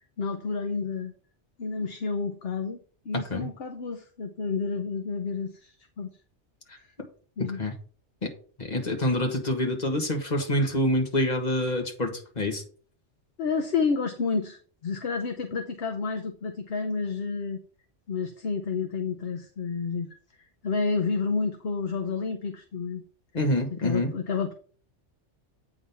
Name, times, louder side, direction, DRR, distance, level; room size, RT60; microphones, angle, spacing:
voice 1, 0.2-1.1 1.6-2.8 3.0-6.1 6.8-6.9 7.4-7.6 13.4-17.6 18.1-20.1 20.6-23.0 23.7-24.5, left 4 dB, 60° left, 5 dB, 1.0 m, -30 dB
voice 2, 7.4-7.7 8.2-8.3 8.6-12.6 23.3-24.1, left 1 dB, 40° left, 3 dB, 1.8 m, -26 dB
8.7 x 3.9 x 5.6 m, 0.42 s
omnidirectional pair, 1.2 m